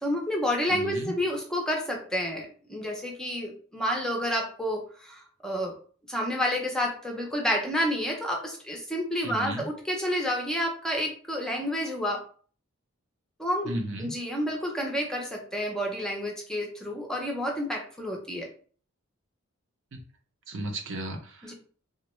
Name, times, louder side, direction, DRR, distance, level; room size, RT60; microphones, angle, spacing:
voice 1, 0.0-5.7 6.1-12.2 13.4-13.7 14.0-18.5 21.4-21.5, equal, 5° left, 0 dB, 0.5 m, -29 dB
voice 2, 0.7-1.1 9.2-9.7 13.7-14.1 19.9-20.0 20.5-21.5, right 1 dB, 60° right, 4 dB, 0.6 m, -34 dB
3.5 x 2.1 x 3.0 m, 0.43 s
head